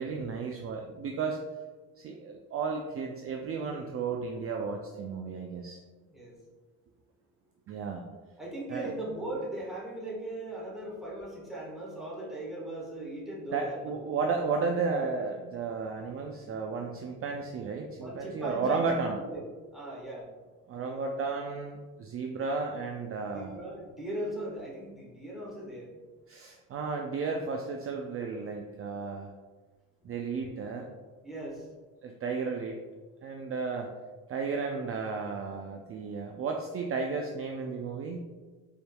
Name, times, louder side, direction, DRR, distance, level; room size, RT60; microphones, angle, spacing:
voice 1, 0.0-1.4 2.0-5.8 7.7-8.1 8.7-8.9 13.5-19.2 20.7-23.6 26.3-29.3 30.0-30.9 32.0-32.8 33.2-33.9 34.3-38.2, right 4 dB, 40° right, 2 dB, 0.4 m, -33 dB
voice 2, 8.4-13.9 18.0-19.4 19.7-20.3 23.3-26.0 31.2-31.7, right 1 dB, ahead, -6 dB, 1.4 m, -38 dB
4.1 x 3.4 x 2.3 m, 1.3 s
cardioid pair, 90°, 35 cm